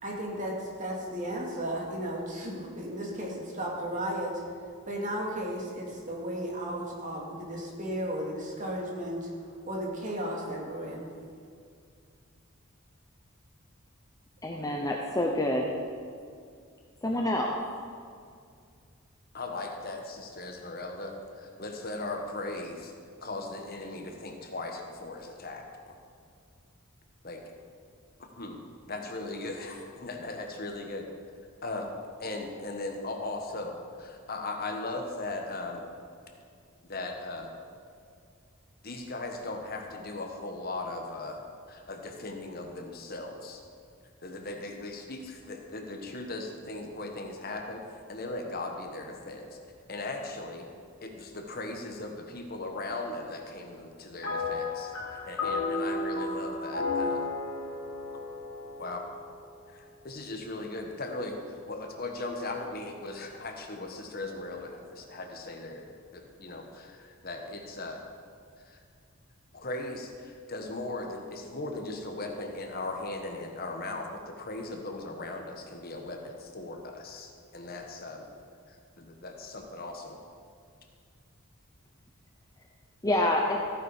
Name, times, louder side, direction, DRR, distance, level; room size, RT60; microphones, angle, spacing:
voice 1, 0.0-4.4 4.9-9.3 9.6-11.1, equal, 35° right, -2 dB, 2.3 m, -34 dB
voice 2, 14.4-15.7 17.0-17.5 83.0-83.6, left 1 dB, 15° left, 0 dB, 0.8 m, -27 dB
voice 3, 19.3-22.9 23.2-25.9 27.2-27.4 28.4-28.6 28.9-31.1 31.6-31.9 32.2-35.8 36.8-37.5 38.8-41.4 41.7-43.6 44.2-47.8 48.1-49.4 49.9-50.7 51.0-54.9 55.3-57.2 58.8-59.0 59.7-61.4 61.7-68.0 68.7-68.8 69.5-78.2 79.0-80.2, left 2 dB, 45° left, 3 dB, 1.3 m, -38 dB
sound 1, 54.2-59.7, left 3 dB, 85° left, 1.9 m, -33 dB
15.0 x 9.4 x 4.9 m, 2.3 s
head